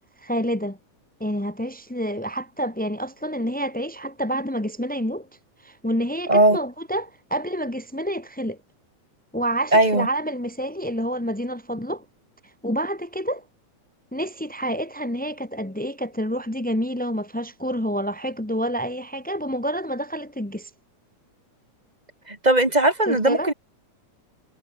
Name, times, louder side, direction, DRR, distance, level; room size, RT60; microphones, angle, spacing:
voice 1, 0.2-0.8 1.2-5.3 5.6-8.6 9.3-12.0 12.6-13.4 14.1-20.7 23.1-23.5, equal, 10° left, 0.5 m, -28 dB
voice 2, 9.7-10.1 22.3-23.5, right 2 dB, 15° right, 2.7 m, -18 dB
omnidirectional pair, 3.5 m